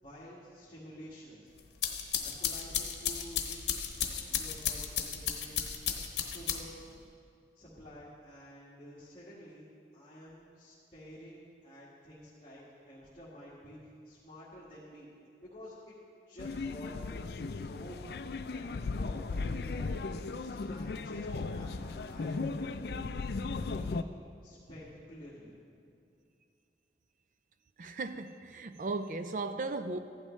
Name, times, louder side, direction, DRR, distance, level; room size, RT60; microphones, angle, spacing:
voice 1, 0.0-1.5 2.2-5.6 5.9-6.8 7.5-9.7 9.9-15.1 15.4-16.0 16.3-18.1 18.5-23.1 23.6-24.1 24.4-26.0, equal, 30° left, 1.8 m, -50 dB
sound 1, 1.6-6.9, left 8 dB, 80° left, 1.0 m, -34 dB
sound 2, 16.4-24.0, left 3 dB, 65° left, 0.4 m, -36 dB
voice 2, 27.8-30.0, right 3 dB, 45° right, 0.4 m, -36 dB
15.0 x 11.5 x 3.2 m
head